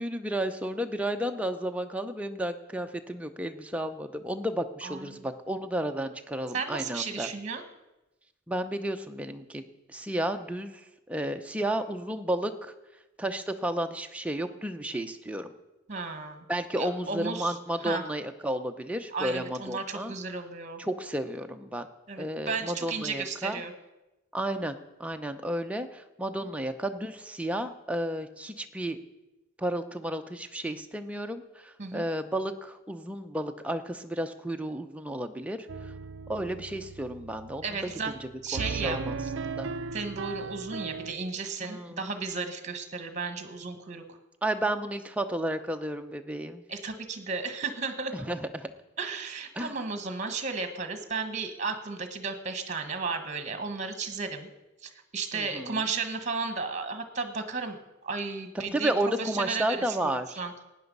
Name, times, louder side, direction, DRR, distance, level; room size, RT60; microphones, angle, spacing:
voice 1, 0.0-7.3 8.5-12.7 13.2-15.5 16.5-20.1 20.8-21.9 22.2-23.6 24.3-29.0 29.6-35.9 36.3-39.2 39.5-39.7 41.6-42.0 44.4-46.6 48.1-48.7 49.5-49.7 55.3-55.8 58.5-60.4, right 1 dB, 5° right, 6 dB, 0.7 m, -32 dB
voice 2, 4.8-5.3 6.5-7.6 15.9-16.4 16.8-17.6 17.8-18.0 19.1-20.8 22.1-23.7 31.8-32.1 37.6-38.1 38.4-39.0 39.9-44.2 46.7-48.3 49.0-54.5 54.8-60.5, right 4 dB, 35° right, 8 dB, 1.4 m, -34 dB
sound 1, 35.7-41.1, right 4 dB, 65° right, 0.5 m, -37 dB
16.5 x 9.7 x 5.4 m, 1.0 s
head